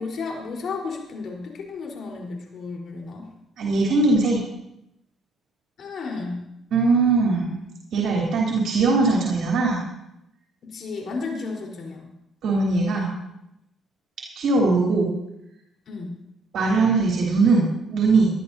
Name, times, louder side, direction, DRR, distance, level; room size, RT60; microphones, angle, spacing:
voice 1, 0.0-3.3 5.8-6.4 10.6-12.1 15.9-16.1, left 4 dB, 60° left, 0 dB, 4.3 m, -33 dB
voice 2, 3.6-4.4 6.7-7.5 7.9-9.8 12.4-13.1 14.3-15.1 16.5-18.3, right 3 dB, 70° right, -3 dB, 3.3 m, -20 dB
21.5 x 12.0 x 2.8 m, 0.83 s
cardioid pair, 90°, 0 cm